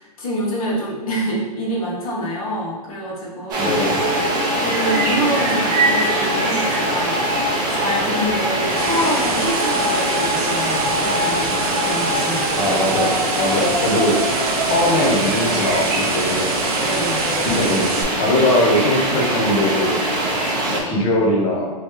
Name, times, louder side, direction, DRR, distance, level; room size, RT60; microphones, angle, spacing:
voice 1, 0.0-3.8 4.3-12.7 16.8-17.3, equal, 65° left, -4 dB, 1.3 m, -26 dB
sound 1, 3.5-20.8, right 1 dB, 20° right, 0.7 m, -21 dB
voice 2, 3.6-4.0 12.6-13.1 13.4-14.2 14.7-16.5 17.4-17.9 18.2-20.0 20.7-21.7, left 1 dB, 25° left, -2 dB, 0.8 m, -20 dB
sound 2, 8.2-18.0, right 5 dB, 65° right, 0.6 m, -28 dB
3.4 x 3.0 x 3.0 m, 1.3 s
hypercardioid pair, 150°, 20 cm